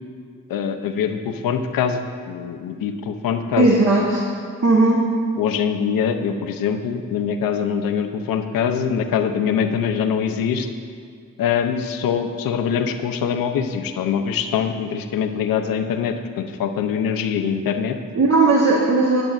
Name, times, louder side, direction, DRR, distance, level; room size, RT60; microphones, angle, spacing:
voice 1, 0.5-3.8 5.4-10.7 11.4-18.0, left 7 dB, 80° left, 6 dB, 0.7 m, -23 dB
voice 2, 3.6-4.2 4.6-5.0 18.1-19.2, right 3 dB, 50° right, -2 dB, 1.3 m, -16 dB
18.0 x 6.9 x 2.5 m, 2.1 s
supercardioid pair, 45°, 34 cm